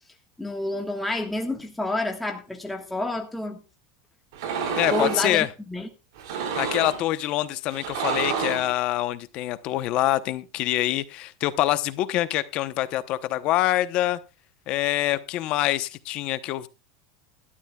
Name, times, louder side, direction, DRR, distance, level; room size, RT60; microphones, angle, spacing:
voice 1, 0.4-3.6 4.9-5.9, left 2 dB, 5° left, 1.5 m, -29 dB
sound 1, 4.3-5.3 6.2-7.0 7.7-8.7, right 6 dB, 75° right, 2.9 m, -29 dB
voice 2, 4.8-5.5 6.6-14.2 14.7-16.7, left 15 dB, 40° left, 0.9 m, -25 dB
17.5 x 12.5 x 2.3 m
supercardioid pair, 160°, 3 cm